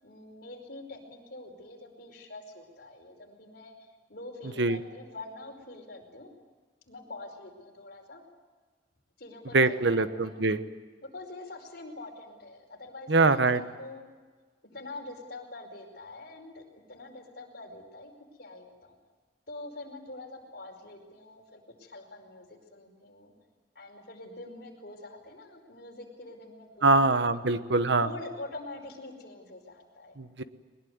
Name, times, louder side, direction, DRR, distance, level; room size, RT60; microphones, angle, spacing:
voice 1, 0.0-6.3 6.9-8.2 9.2-10.4 11.0-14.0 14.7-16.6 16.9-18.1 18.4-19.0 19.5-23.3 23.7-27.6 28.0-30.1, left 2 dB, 55° left, 2 dB, 5.0 m, -45 dB
voice 2, 9.5-10.6 13.1-13.6 26.8-28.1 30.2-30.4, right 3 dB, 65° right, 12 dB, 1.1 m, -23 dB
22.0 x 20.5 x 9.5 m, 1.4 s
head